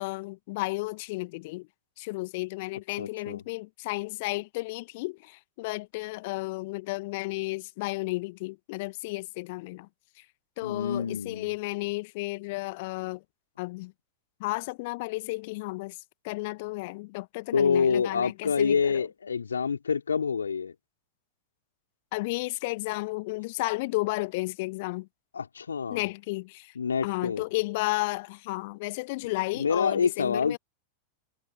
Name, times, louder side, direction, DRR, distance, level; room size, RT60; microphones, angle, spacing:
voice 1, 0.0-1.7 2.0-9.9 10.2-10.3 10.6-13.2 13.6-13.9 14.4-16.0 16.2-19.1 22.1-25.1 25.9-26.7 27.0-30.6, left 23 dB, 50° left, 1.4 m, -33 dB
voice 2, 3.0-3.4 10.6-11.5 17.5-20.7 25.3-26.0 26.7-27.4 29.5-30.6, left 6 dB, 70° left, 3.3 m, -27 dB
figure-of-eight pair, 90°, 0 cm